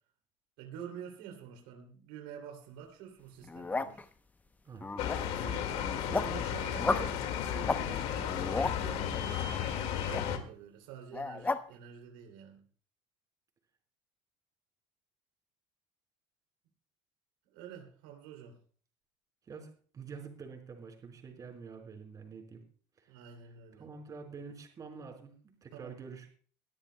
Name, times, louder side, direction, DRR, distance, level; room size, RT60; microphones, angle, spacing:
voice 1, 0.6-4.0 5.3-9.6 10.0-12.6 17.4-18.6 23.1-23.9 25.7-25.9, right 8 dB, 90° right, 2 dB, 2.8 m, -48 dB
sound 1, 3.4-4.0 4.7-5.4 5.8-6.4 6.8-7.1 7.6-7.8 8.2-8.8 10.1-10.2 11.1-11.6, left 3 dB, 15° left, 0.8 m, -33 dB
voice 2, 4.6-5.0 19.4-22.6 23.0-23.2 23.7-26.3, right 5 dB, 30° right, 3 dB, 4.5 m, -47 dB
sound 2, 5.0-10.4, left 9 dB, 65° left, 1.9 m, -34 dB
22.0 x 13.5 x 2.2 m, 0.43 s
cardioid pair, 120°, 11 cm